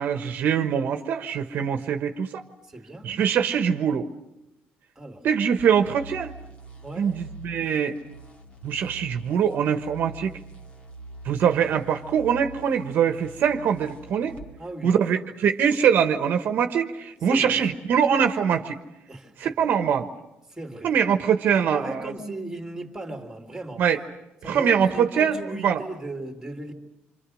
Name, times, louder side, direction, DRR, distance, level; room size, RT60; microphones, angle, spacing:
voice 1, 0.0-2.5 3.0-4.1 5.2-6.3 7.0-7.9 8.6-10.3 11.2-14.3 14.8-18.8 19.4-20.1 20.8-22.1 23.8-24.0 24.4-25.4 25.6-25.8, right 7 dB, 55° right, 7 dB, 1.3 m, -23 dB
voice 2, 2.6-3.1 5.0-5.2 6.8-7.1 14.6-15.0 17.3-17.7 19.1-19.5 20.5-21.0 21.5-23.8 24.4-26.7, right 2 dB, 5° right, 3 dB, 2.9 m, -37 dB
sound 1, 5.6-14.5, right 2 dB, 35° left, 2.5 m, -44 dB
27.5 x 25.5 x 6.4 m, 0.92 s
cardioid pair, 150°, 4 cm